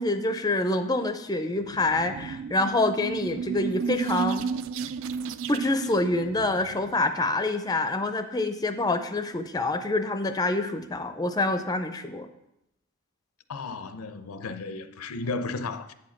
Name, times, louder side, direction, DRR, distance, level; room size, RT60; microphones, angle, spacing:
voice 1, 0.0-4.5 5.5-12.3, left 2 dB, 20° left, 0.5 m, -26 dB
sound 1, 1.6-7.0, right 6 dB, 65° right, 0.3 m, -33 dB
voice 2, 13.5-15.9, left 3 dB, 90° left, 0.6 m, -34 dB
8.6 x 5.0 x 5.8 m
head